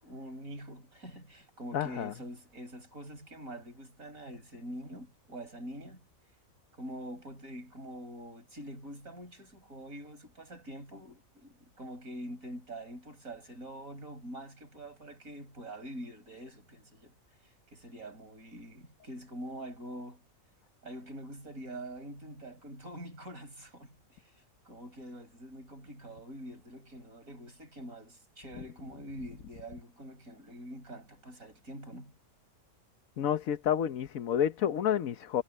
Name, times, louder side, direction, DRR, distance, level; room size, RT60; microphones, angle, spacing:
voice 1, 0.0-6.0 6.8-17.2 17.7-20.2 20.8-32.1, equal, 85° right, 6.5 m, -45 dB
voice 2, 1.7-2.1 33.2-35.4, left 9 dB, 80° left, 1.3 m, -29 dB
omnidirectional pair, 1.4 m